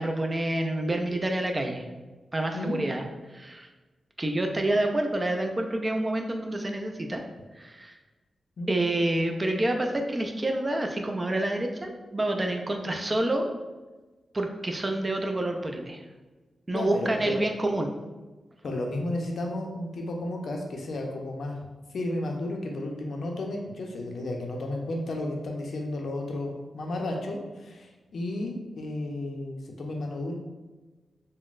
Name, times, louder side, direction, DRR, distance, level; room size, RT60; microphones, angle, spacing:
voice 1, 0.0-1.8 2.3-3.0 3.3-3.7 4.2-7.2 7.5-7.9 8.7-13.5 14.3-16.0 16.7-17.9, right 1 dB, 25° right, 3 dB, 0.3 m, -28 dB
voice 2, 16.7-17.3 18.6-21.6 21.9-30.3, left 1 dB, 70° left, 1 dB, 0.5 m, -33 dB
3.8 x 2.0 x 2.4 m, 1.2 s
wide cardioid pair, 110°, 0 cm